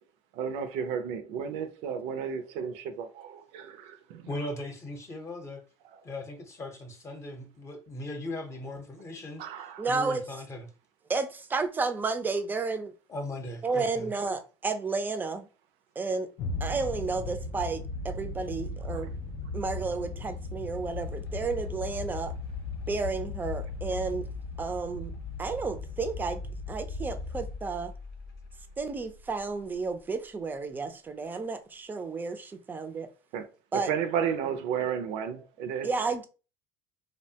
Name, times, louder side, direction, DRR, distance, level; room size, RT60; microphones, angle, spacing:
voice 1, 0.3-4.3 9.4-9.9 18.9-19.1 33.3-33.5 33.7-35.9, right 7 dB, 70° right, 0.5 m, -33 dB
voice 2, 4.3-5.6 6.0-9.4 9.8-10.7 13.1-14.1, left 1 dB, 30° left, 0.7 m, -38 dB
voice 3, 9.8-10.2 11.1-12.9 13.6-15.5 16.0-16.3 16.6-19.1 19.5-22.3 22.9-24.3 24.6-25.1 25.4-26.4 26.7-27.9 28.8-33.1 33.7-33.9 35.8-36.3, right 4 dB, 20° right, 0.4 m, -32 dB
sound 1, 16.4-27.6, left 3 dB, 50° left, 0.4 m, -38 dB
sound 2, 20.9-30.0, left 3 dB, 85° left, 0.8 m, -42 dB
2.7 x 2.1 x 2.7 m
supercardioid pair, 110°, 10 cm